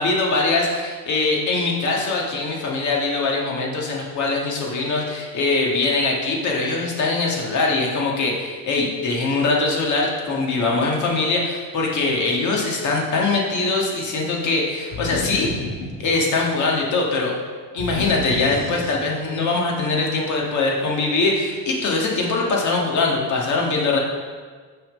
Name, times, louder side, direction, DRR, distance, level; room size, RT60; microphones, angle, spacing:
voice 1, 0.0-15.5 16.0-17.3 17.7-24.0, left 3 dB, 45° left, -1 dB, 1.6 m, -22 dB
sound 1, 14.9-16.6 17.8-19.4, left 2 dB, 75° left, 1.7 m, -31 dB
6.6 x 5.7 x 5.2 m, 1.5 s
cardioid pair, 145°, 40 cm